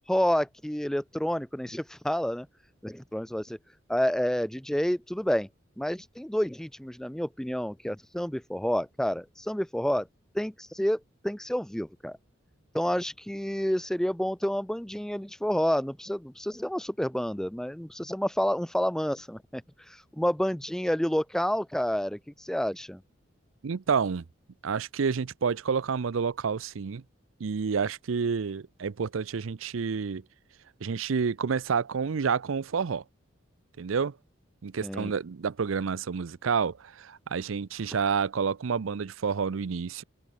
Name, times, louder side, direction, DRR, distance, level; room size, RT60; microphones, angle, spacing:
voice 1, 0.1-2.5 2.8-3.6 3.9-5.5 5.8-10.1 10.3-12.2 12.7-23.0 34.8-35.1, equal, 5° left, 0.4 m, -29 dB
voice 2, 23.6-24.2 24.6-27.0 27.4-30.2 30.8-33.0 33.8-34.1 34.6-40.0, right 6 dB, 80° right, 0.5 m, -29 dB
head